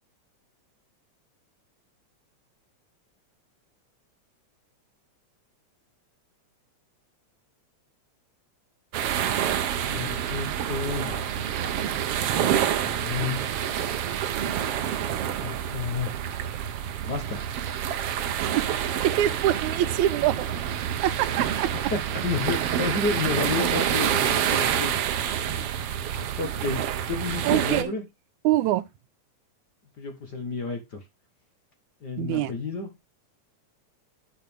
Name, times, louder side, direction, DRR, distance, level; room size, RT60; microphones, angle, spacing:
sound 1, 8.9-27.8, right 9 dB, 65° right, 1.6 m, -27 dB
voice 1, 9.9-11.5 12.8-13.5 15.4-16.1 17.1-17.5 21.9-24.9 26.0-26.8 27.1-28.0 30.0-31.0 32.0-32.9, left 4 dB, 45° left, 1.5 m, -31 dB
voice 2, 19.0-20.5 21.0-22.2 27.4-27.9 28.4-28.8 32.2-32.5, right 13 dB, 90° right, 2.1 m, -25 dB
11.5 x 5.1 x 3.5 m
omnidirectional pair, 3.3 m